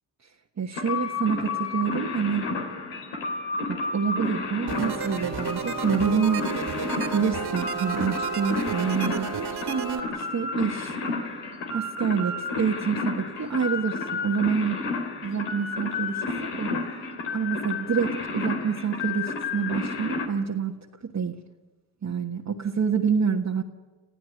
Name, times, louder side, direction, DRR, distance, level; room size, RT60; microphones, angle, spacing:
voice 1, 0.6-2.5 3.7-6.5 7.1-10.9 11.7-14.8 15.2-16.8 17.3-20.8 21.0-21.3 22.0-23.6, right 6 dB, 40° right, 0 dB, 1.5 m, -27 dB
sound 1, 0.7-20.3, left 3 dB, 85° left, 3.3 m, -31 dB
sound 2, 4.7-10.0, right 6 dB, 65° right, 2.4 m, -32 dB
28.0 x 14.5 x 9.4 m, 1.3 s
supercardioid pair, 60°, 43 cm